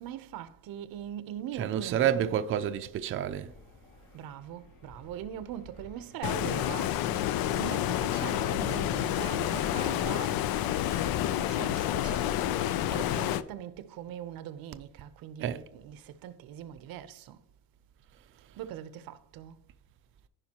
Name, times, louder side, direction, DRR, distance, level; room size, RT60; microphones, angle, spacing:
voice 1, 0.0-2.4 4.1-17.4 18.6-19.6, right 11 dB, 85° right, 0.8 m, -42 dB
voice 2, 1.6-3.5 15.4-15.6, right 10 dB, 35° right, 0.4 m, -29 dB
Fixed-wing aircraft airplane, 3.3-10.7, left 2 dB, 70° left, 2.5 m, -51 dB
Stream, 6.2-13.4, left 12 dB, 90° left, 0.6 m, -29 dB
15.0 x 5.1 x 2.9 m
cardioid pair, 170°, 34 cm